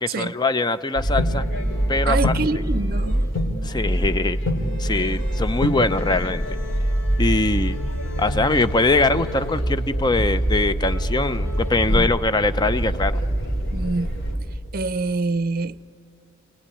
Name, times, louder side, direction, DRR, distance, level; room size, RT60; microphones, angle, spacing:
voice 1, 0.0-1.4 1.9-2.3 3.6-6.4 7.2-7.8 8.2-13.2, left 2 dB, 20° left, 0.6 m, -22 dB
sound 1, 1.0-14.4, equal, 85° left, 3.4 m, -24 dB
voice 2, 2.1-3.3 11.9-12.1 13.7-14.1 14.7-15.8, right 3 dB, 50° right, 0.6 m, -25 dB
28.5 x 18.5 x 9.9 m
head